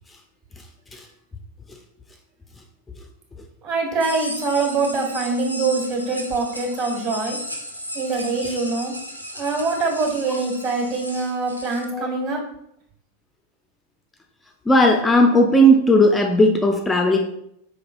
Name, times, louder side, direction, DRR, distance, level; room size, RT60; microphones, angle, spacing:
voice 1, 3.6-7.4 7.9-8.9 9.3-12.4, right 3 dB, 45° right, 0 dB, 1.4 m, -24 dB
sound 1, 4.0-11.8, equal, 90° left, 0.5 m, -35 dB
voice 2, 14.7-17.2, equal, 10° left, 3 dB, 0.4 m, -16 dB
4.6 x 3.2 x 2.3 m, 0.76 s
figure-of-eight pair, 90°, 0 cm